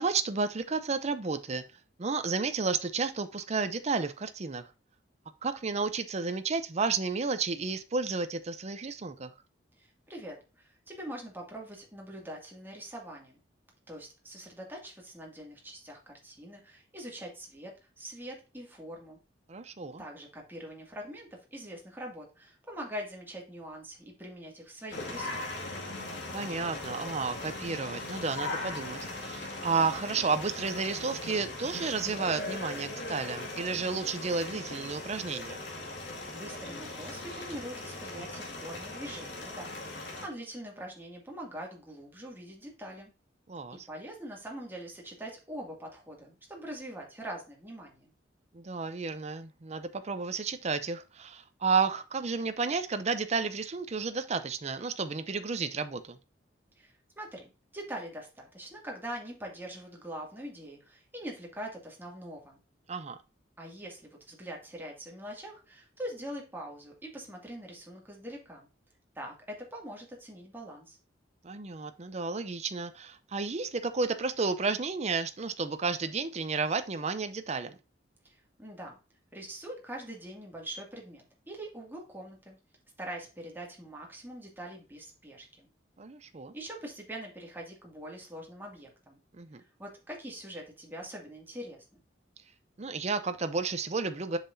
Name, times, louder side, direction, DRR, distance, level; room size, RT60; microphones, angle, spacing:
voice 1, 0.0-1.6 2.0-4.7 5.4-9.3 19.5-20.0 26.3-35.6 43.5-43.9 48.5-56.2 62.9-63.2 71.4-77.8 86.0-86.5 89.4-89.6 92.8-94.4, right 4 dB, 35° right, 10 dB, 0.6 m, -32 dB
voice 2, 9.8-13.4 13.9-19.2 20.0-25.7 35.9-43.1 43.9-48.1 56.8-62.6 63.6-68.7 69.2-71.0 78.2-79.0 79.3-82.6 83.0-85.7 86.5-89.2 89.8-92.0, right 1 dB, 10° right, -1 dB, 2.2 m, -43 dB
sound 1, 24.9-40.3, left 2 dB, 70° left, 2.1 m, -39 dB
7.2 x 5.7 x 2.6 m, 0.30 s
head